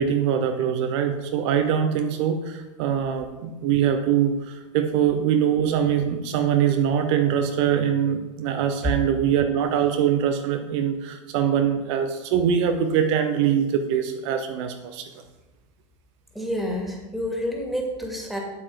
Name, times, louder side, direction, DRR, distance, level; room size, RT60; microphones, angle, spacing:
voice 1, 0.0-15.1, right 8 dB, 65° right, 6 dB, 0.9 m, -23 dB
voice 2, 16.3-18.4, equal, ahead, 0 dB, 2.4 m, -28 dB
7.9 x 7.6 x 4.8 m, 1.1 s
hypercardioid pair, 100°, 16 cm